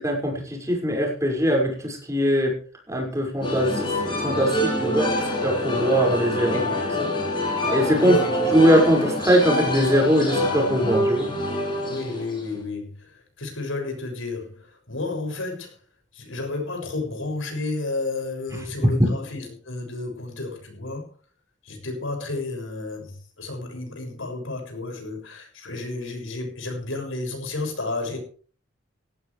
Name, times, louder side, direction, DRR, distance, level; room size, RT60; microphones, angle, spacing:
voice 1, 0.0-2.6 2.9-5.1 5.4-6.6 7.7-8.2 8.5-11.3, equal, 15° right, 1 dB, 5.8 m, -21 dB
sound 1, 3.4-12.6, left 1 dB, 25° left, 7.8 m, -25 dB
voice 2, 4.8-5.3 6.4-6.8 8.0-8.5 11.9-15.8 16.1-21.1 21.6-28.2, left 3 dB, 90° left, 4 dB, 6.7 m, -32 dB
18.0 x 16.0 x 3.4 m, 0.42 s
head